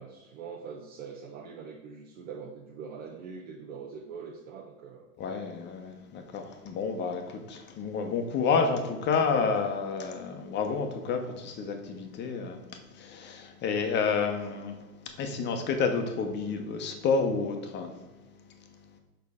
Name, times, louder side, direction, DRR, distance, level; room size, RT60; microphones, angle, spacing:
voice 1, 0.0-5.1, right 5 dB, 60° right, 0 dB, 1.1 m, -43 dB
voice 2, 5.2-14.9 15.1-18.0, left 5 dB, 25° left, 5 dB, 0.8 m, -30 dB
6.3 x 5.4 x 3.6 m, 1.2 s
supercardioid pair, 135°, 47 cm